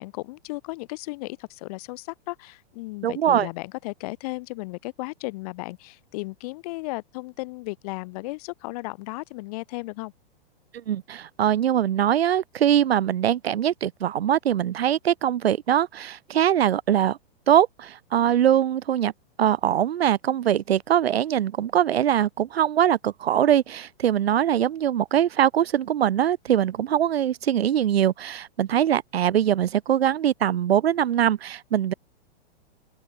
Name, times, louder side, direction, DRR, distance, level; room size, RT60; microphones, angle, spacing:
voice 1, 0.0-10.1, left 23 dB, 40° left, 3.2 m, -35 dB
voice 2, 3.0-3.5 10.9-17.2 17.5-19.1 19.4-31.9, right 10 dB, 75° right, 2.6 m, -22 dB
open air
hypercardioid pair, 160°, 31 cm